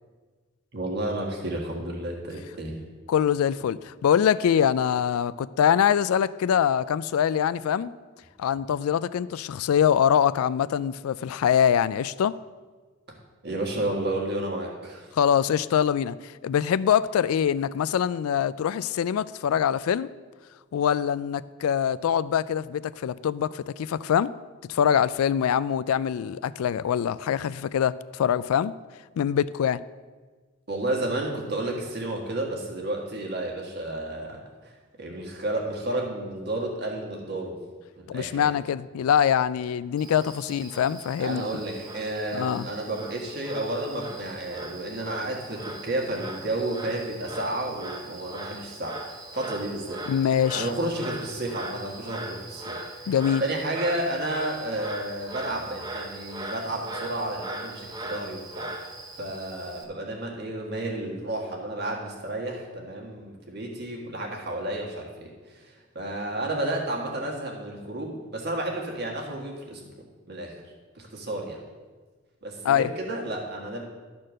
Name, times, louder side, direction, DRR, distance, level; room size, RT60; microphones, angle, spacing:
voice 1, 0.7-2.8 13.4-15.1 30.7-34.7 35.0-37.5 38.0-38.5 41.2-49.0 49.3-50.0 50.5-53.1 53.4-58.7 59.2-69.9 70.3-70.5 70.9-71.6 72.4-73.8, right 1 dB, 50° right, 0 dB, 1.7 m, -31 dB
voice 2, 3.1-7.9 8.4-12.4 15.1-20.1 20.7-24.3 24.7-28.7 29.2-29.8 38.1-41.5 42.3-42.7 50.1-50.7 53.1-53.4 72.6-72.9, left 8 dB, 85° left, 18 dB, 0.3 m, -24 dB
Frog, 40.0-59.8, right 2 dB, 20° right, 0.7 m, -39 dB
12.0 x 4.4 x 6.3 m, 1.4 s
head